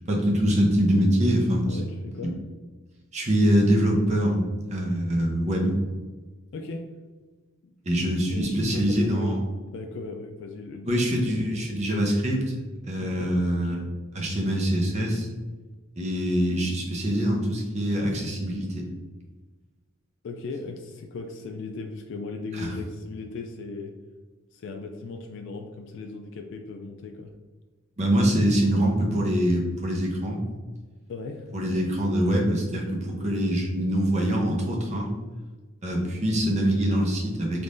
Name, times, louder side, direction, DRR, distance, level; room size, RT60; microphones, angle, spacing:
voice 1, 0.1-1.9 2.2-2.3 3.1-4.4 4.7-5.8 7.8-9.4 10.9-12.5 12.8-13.8 14.1-15.3 16.0-18.8 22.5-22.7 28.0-30.4 31.5-35.1 35.8-37.6, equal, 35° right, -1 dB, 0.7 m, -24 dB
voice 2, 1.7-2.3 6.5-6.9 7.6-7.7 8.0-9.4 9.7-11.1 13.0-13.3 20.2-23.9 24.5-27.3 31.1-31.5, left 3 dB, 60° left, 4 dB, 0.3 m, -37 dB
3.6 x 3.2 x 2.5 m, 1.3 s
head